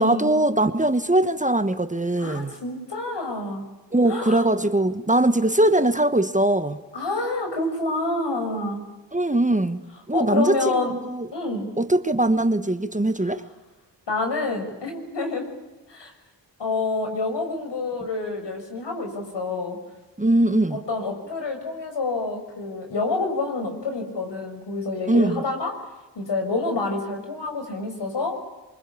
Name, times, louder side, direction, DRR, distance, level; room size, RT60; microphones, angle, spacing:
voice 1, 0.0-2.6 3.9-6.8 9.1-9.8 10.1-11.3 11.8-13.4 20.2-20.8 25.1-25.4, right 1 dB, 15° right, 1.3 m, -21 dB
voice 2, 2.2-3.6 4.1-4.5 6.9-8.8 10.1-10.9 11.3-11.7 14.1-15.4 15.9-16.1 16.6-19.8 20.7-25.7 26.1-28.4, left 3 dB, 70° left, 6.2 m, -27 dB
24.5 x 24.0 x 8.5 m
cardioid pair, 45°, 44 cm